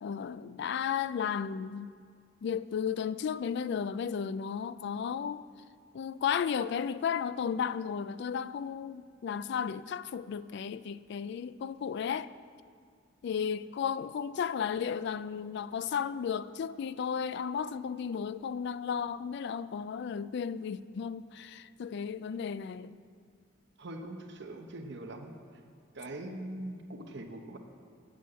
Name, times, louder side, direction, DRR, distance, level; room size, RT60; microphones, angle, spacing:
voice 1, 0.0-1.9 2.4-5.4 5.9-12.3 13.2-23.0, left 7 dB, 60° left, 0.3 m, -34 dB
voice 2, 23.8-25.3 25.9-27.6, right 1 dB, 60° right, 0.9 m, -42 dB
8.2 x 7.8 x 7.6 m
head